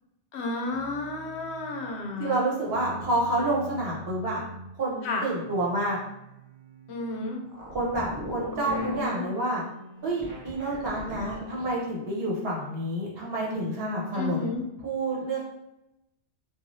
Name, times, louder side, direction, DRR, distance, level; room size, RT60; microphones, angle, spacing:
voice 1, 0.3-2.4 5.0-5.2 6.9-7.4 8.6-9.3 14.1-14.6, left 3 dB, 75° left, 2 dB, 0.8 m, -32 dB
sound 1, 0.7-2.0 2.7-4.8 5.4-7.4 8.2-10.2, right 1 dB, 5° left, 0.8 m, -45 dB
voice 2, 2.2-4.4 4.8-6.0 7.7-9.6 10.0-14.5 14.8-15.5, right 1 dB, 60° right, -4 dB, 1.0 m, -28 dB
sound 2, 7.5-9.1 10.0-11.8, equal, 20° right, 0.6 m, -41 dB
3.1 x 2.4 x 2.6 m, 0.87 s
omnidirectional pair, 1.2 m